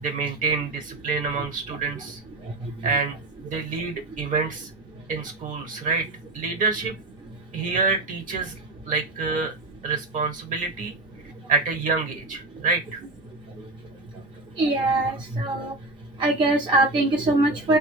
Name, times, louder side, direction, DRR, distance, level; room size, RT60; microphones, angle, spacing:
voice 1, 0.0-2.2 2.8-3.1 3.4-4.7 5.1-6.1 6.3-6.9 7.5-8.5 8.8-9.5 9.8-10.9 11.5-13.0, right 4 dB, 50° right, 1.2 m, -26 dB
voice 2, 14.6-15.7 16.2-17.8, right 2 dB, 30° right, 0.7 m, -21 dB
3.2 x 2.2 x 3.1 m
cardioid pair, 110°, 17 cm